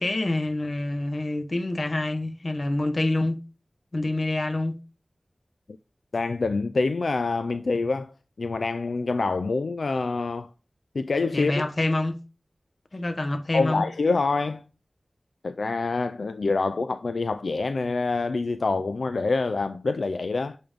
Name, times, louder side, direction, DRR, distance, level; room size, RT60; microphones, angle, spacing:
voice 1, 0.0-3.4 3.9-4.7 11.3-12.1 12.9-13.8, left 2 dB, 55° left, 1.0 m, -26 dB
voice 2, 6.1-8.1 8.4-10.5 10.9-11.6 13.5-14.6 15.4-20.6, left 3 dB, 85° left, 0.3 m, -26 dB
7.8 x 3.6 x 3.4 m
wide cardioid pair, 55°, 0 cm